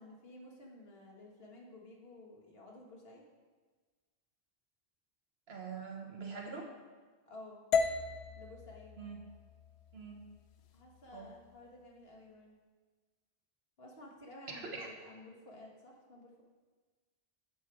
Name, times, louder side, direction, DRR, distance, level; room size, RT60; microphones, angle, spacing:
voice 1, 0.0-3.2 7.2-7.6 8.4-9.0 10.7-12.6 13.8-16.4, left 2 dB, 70° left, -2 dB, 1.7 m, -53 dB
voice 2, 5.5-6.7 9.0-9.2 9.9-10.2 11.1-11.3 14.5-14.9, right 5 dB, 75° right, 0 dB, 1.5 m, -44 dB
sound 1, 7.7-11.9, left 5 dB, 90° left, 0.9 m, -37 dB
8.0 x 4.9 x 6.0 m, 1.4 s
omnidirectional pair, 1.1 m